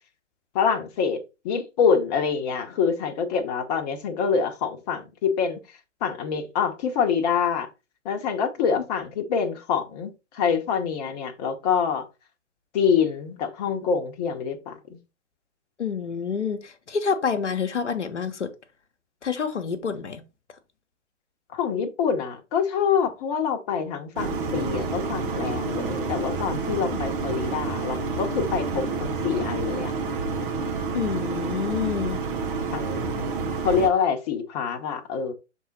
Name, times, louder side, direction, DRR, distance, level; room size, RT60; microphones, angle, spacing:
voice 1, 0.5-1.2 1.4-5.6 6.0-7.7 8.0-12.0 12.7-15.0 21.5-29.9 32.7-33.3 33.6-35.3, left 6 dB, 35° left, 1.1 m, -26 dB
voice 2, 15.8-18.5 19.2-20.2 26.9-27.1 30.9-32.2, left 6 dB, 75° left, 1.0 m, -28 dB
sound 1, 24.2-33.9, right 4 dB, 45° right, 1.6 m, -29 dB
6.5 x 3.7 x 4.1 m
figure-of-eight pair, 120°, 36 cm